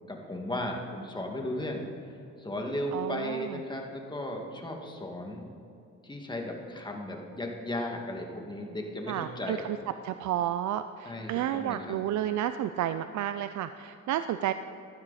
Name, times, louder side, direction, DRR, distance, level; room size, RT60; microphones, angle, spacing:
voice 1, 0.1-1.8 2.4-5.5 6.0-9.7 11.0-12.0, left 1 dB, 15° left, 1 dB, 2.1 m, -35 dB
voice 2, 2.9-3.6 9.1-9.8 10.0-14.5, right 11 dB, 70° right, 11 dB, 0.5 m, -31 dB
15.0 x 11.5 x 4.2 m, 2.7 s
cardioid pair, 90°, 30 cm